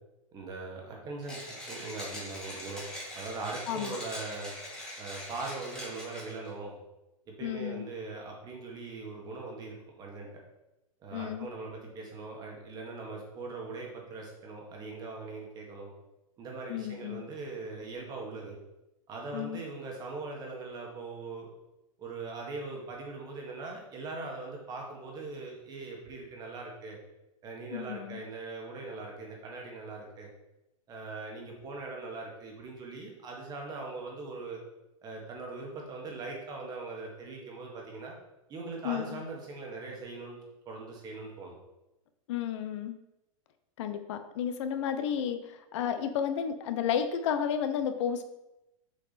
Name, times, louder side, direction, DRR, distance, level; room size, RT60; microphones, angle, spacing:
voice 1, 0.3-2.8 3.1-4.5 5.0-6.8 7.3-10.3 11.0-15.9 16.4-18.6 19.1-21.5 22.0-27.0 27.4-30.3 30.9-34.6 35.0-38.1 38.5-40.4 40.6-41.5, right 3 dB, 20° right, 0 dB, 1.5 m, -41 dB
Mechanisms, 1.2-6.5, left 1 dB, 5° left, 1.9 m, -42 dB
voice 2, 3.7-4.0 7.4-7.9 11.1-11.5 16.7-17.2 19.3-19.6 27.7-28.2 38.8-39.2 42.3-43.0 43.8-48.2, left 8 dB, 55° left, 9 dB, 0.8 m, -32 dB
6.9 x 4.6 x 4.2 m, 0.92 s
hypercardioid pair, 150°, 18 cm